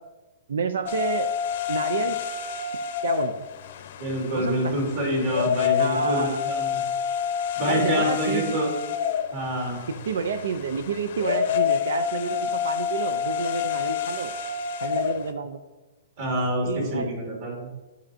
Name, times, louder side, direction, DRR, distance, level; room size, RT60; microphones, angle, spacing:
voice 1, 0.5-1.3 1.7-2.2 3.0-3.3 4.3-4.7 5.8-6.4 7.7-8.6 10.0-14.3 14.8-15.6 16.6-17.8, right 5 dB, 80° right, 10 dB, 0.4 m, -29 dB
sound 1, 0.9-15.3, left 8 dB, 60° left, 0.6 m, -28 dB
voice 2, 4.0-6.7 7.6-8.7 9.3-9.8 16.2-17.6, equal, 50° right, -1 dB, 2.0 m, -27 dB
11.0 x 4.3 x 2.7 m, 1.1 s
hypercardioid pair, 150°, 0 cm